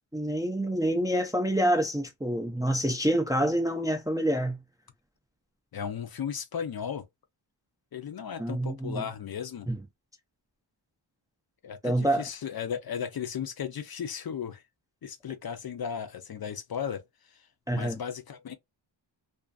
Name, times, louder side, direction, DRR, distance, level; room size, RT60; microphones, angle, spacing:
voice 1, 0.1-4.6 8.4-9.1 9.7-9.8 11.8-12.2 17.7-18.0, right 1 dB, 10° right, 0.4 m, -27 dB
voice 2, 5.7-7.0 7.9-9.7 11.6-14.6 15.0-18.5, left 7 dB, 55° left, 0.5 m, -36 dB
2.5 x 2.4 x 2.3 m
wide cardioid pair, 135°, 46 cm